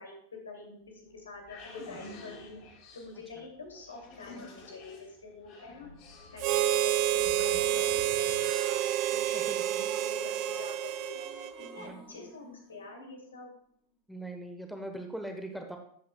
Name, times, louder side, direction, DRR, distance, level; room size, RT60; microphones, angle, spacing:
voice 1, 0.0-2.6 2.9-5.9 6.3-11.2 11.7-13.5, left 3 dB, 70° left, 1 dB, 2.5 m, -47 dB
sound 1, 0.9-9.9, left 3 dB, 40° left, 1.9 m, -49 dB
Harmonica, 6.4-11.9, right 12 dB, 40° right, 0.6 m, -29 dB
voice 2, 9.3-9.9 11.8-12.0 14.1-15.8, right 1 dB, ahead, 4 dB, 1.1 m, -41 dB
sound 2, 9.4-13.7, left 2 dB, 20° left, 2.3 m, -51 dB
12.5 x 8.3 x 2.3 m, 0.65 s
figure-of-eight pair, 90°, 0 cm